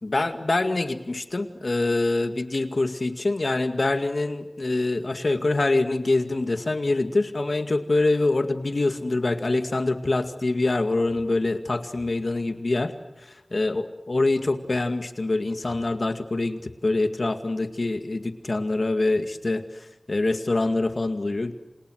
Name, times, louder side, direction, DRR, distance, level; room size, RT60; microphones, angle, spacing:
voice 1, 0.0-12.9 13.5-19.6 20.1-21.5, left 2 dB, 75° left, 9 dB, 2.1 m, -25 dB
29.0 x 27.5 x 6.5 m, 1.0 s
wide cardioid pair, 55°, 0 cm